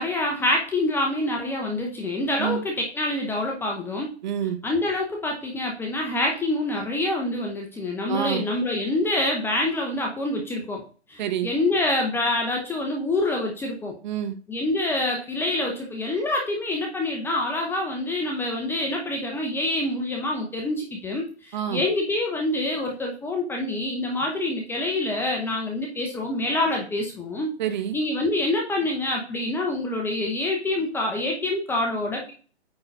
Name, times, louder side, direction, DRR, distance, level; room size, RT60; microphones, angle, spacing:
voice 1, 0.0-4.1 4.6-10.8 11.1-13.9 14.5-27.5 27.9-32.3, left 2 dB, 5° left, 1 dB, 0.7 m, -26 dB
voice 2, 4.2-4.6 8.1-8.4 11.2-11.5 14.0-14.4 21.5-21.8 27.6-28.0, right 10 dB, 40° right, 9 dB, 1.0 m, -27 dB
8.9 x 3.8 x 3.9 m, 0.39 s
hypercardioid pair, 140°, 34 cm